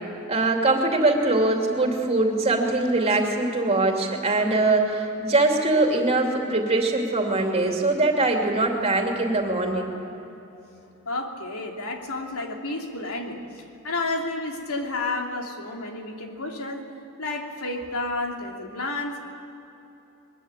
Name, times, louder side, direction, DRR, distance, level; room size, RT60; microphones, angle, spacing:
voice 1, 0.3-9.9, right 2 dB, 30° right, 1 dB, 2.9 m, -22 dB
voice 2, 11.1-16.9 17.2-19.2, left 2 dB, 80° left, 2 dB, 3.0 m, -31 dB
22.5 x 22.0 x 9.0 m, 2.9 s
head